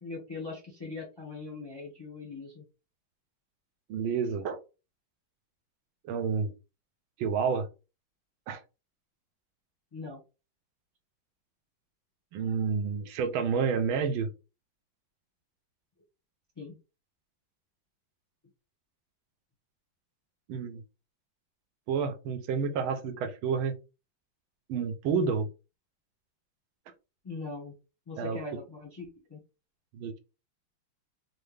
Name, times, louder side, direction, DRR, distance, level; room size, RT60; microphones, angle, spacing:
voice 1, 0.0-2.6 9.9-10.2 16.6-16.8 27.2-27.8 28.1-29.4, left 3 dB, 20° left, -2 dB, 0.7 m, -41 dB
voice 2, 3.9-4.6 6.1-6.5 7.2-7.7 8.5-8.6 12.3-14.3 20.5-20.8 21.9-23.7 24.7-25.5 28.2-28.4 29.9-30.2, right 6 dB, 85° right, 7 dB, 1.5 m, -29 dB
4.3 x 2.1 x 3.3 m, 0.30 s
omnidirectional pair, 2.2 m